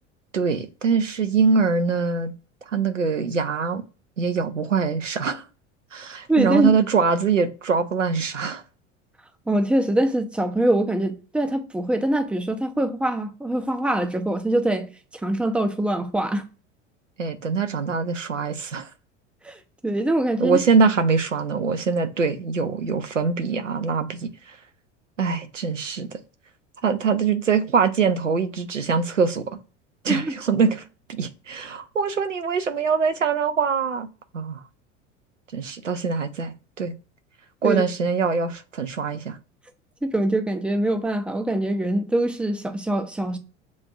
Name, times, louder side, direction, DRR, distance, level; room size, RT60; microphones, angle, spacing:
voice 1, 0.3-2.3 2.7-3.8 4.2-5.4 5.9-8.6 17.2-18.9 20.4-24.6 25.2-26.2 26.8-29.6 30.0-34.1 34.3-34.6 35.5-36.9 37.6-39.4, right 5 dB, 85° right, 0.6 m, -23 dB
voice 2, 6.3-6.7 9.5-14.9 15.2-16.4 19.4-20.6 30.1-30.3 37.6-37.8 40.0-43.4, right 1 dB, 5° right, 0.4 m, -23 dB
7.1 x 2.5 x 2.3 m
figure-of-eight pair, 75°, 37 cm